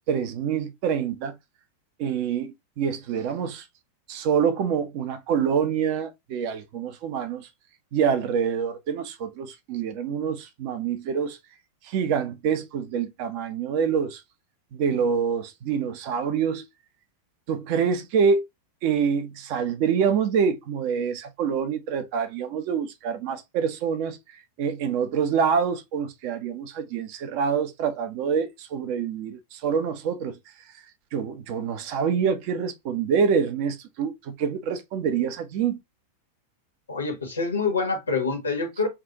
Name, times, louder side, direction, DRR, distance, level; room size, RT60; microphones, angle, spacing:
voice 1, 0.1-1.4 2.0-3.7 4.1-7.5 7.9-11.4 11.8-14.2 14.7-16.6 17.5-18.4 18.8-30.8 31.1-35.8, right 7 dB, 45° right, 0.8 m, -26 dB
voice 2, 36.9-38.9, left 4 dB, 75° left, 1.3 m, -26 dB
5.9 x 2.5 x 2.9 m
figure-of-eight pair, 90°, 0 cm